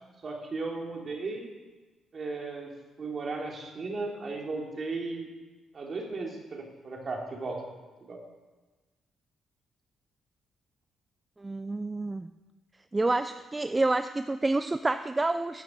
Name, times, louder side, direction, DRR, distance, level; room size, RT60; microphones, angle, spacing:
voice 1, 0.2-1.5 2.1-2.7 3.0-5.3 5.7-7.6 8.1-8.2, right 3 dB, 40° right, -1 dB, 3.0 m, -35 dB
voice 2, 11.4-12.3 12.9-15.6, right 2 dB, 20° right, 10 dB, 0.4 m, -28 dB
12.5 x 6.6 x 7.6 m, 1.3 s
cardioid pair, 90°, 0 cm